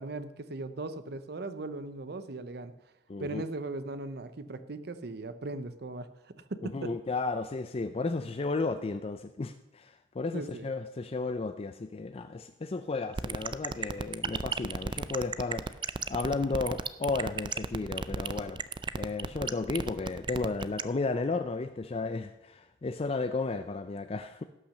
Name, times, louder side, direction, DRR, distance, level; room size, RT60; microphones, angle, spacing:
voice 1, 0.0-2.7 3.2-6.1 6.5-6.9 10.3-10.7, right 2 dB, 60° right, 11 dB, 0.7 m, -38 dB
voice 2, 3.1-3.4 6.6-15.8 16.1-18.6 18.9-24.4, left 3 dB, 30° left, 9 dB, 0.4 m, -33 dB
sound 1, 13.2-20.8, right 4 dB, 25° right, 0.4 m, -32 dB
17.0 x 5.9 x 6.5 m, 0.94 s
head